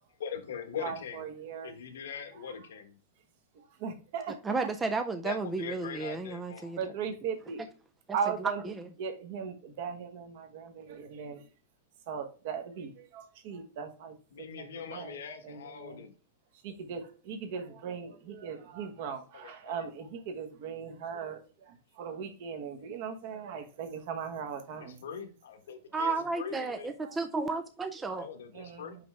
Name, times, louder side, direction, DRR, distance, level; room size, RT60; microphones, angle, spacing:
voice 1, 0.2-1.4 1.6-3.0 5.2-6.8 14.3-16.1 19.3-19.9 24.8-26.9 28.1-29.0, left 7 dB, 90° left, 1.3 m, -42 dB
voice 2, 0.8-1.7 3.8-4.3 6.8-7.6 8.1-8.6 9.0-11.4 12.1-15.2 15.4-16.0 16.6-21.4 21.7-25.0 28.5-29.0, right 6 dB, 40° right, 1.1 m, -38 dB
voice 3, 4.4-6.9 8.1-8.9 25.9-28.3, right 4 dB, 10° right, 0.4 m, -33 dB
5.5 x 5.4 x 3.3 m
supercardioid pair, 175°, 0 cm